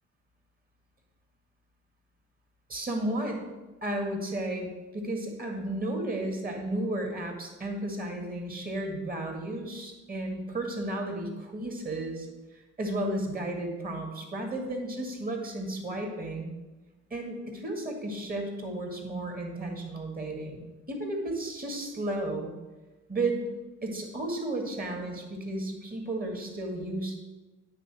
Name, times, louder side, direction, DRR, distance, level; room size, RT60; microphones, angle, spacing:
voice 1, 2.7-3.4 3.8-12.3 12.8-16.5 17.1-22.5 23.1-23.4 23.8-27.1, right 1 dB, 30° right, 2 dB, 2.0 m, -33 dB
8.9 x 3.9 x 6.2 m, 1.1 s
cardioid pair, 90°, 30 cm